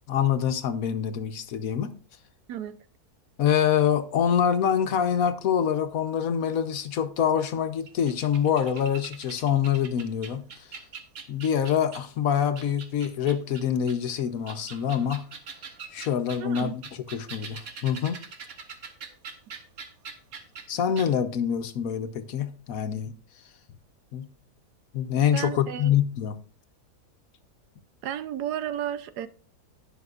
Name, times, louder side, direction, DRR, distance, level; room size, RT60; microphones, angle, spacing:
voice 1, 0.1-1.9 3.4-10.7 11.3-15.2 15.9-16.7 17.1-18.2 20.7-23.1 24.1-24.3 24.9-26.4, left 8 dB, 65° left, 1.2 m, -25 dB
sound 1, 7.9-12.1 12.6-14.0 14.4-20.7 21.0-21.1, right 5 dB, 60° right, 1.5 m, -43 dB
voice 2, 16.4-16.8 25.3-25.9 28.0-29.3, right 10 dB, 80° right, 1.2 m, -33 dB
17.5 x 6.1 x 2.4 m
omnidirectional pair, 1.7 m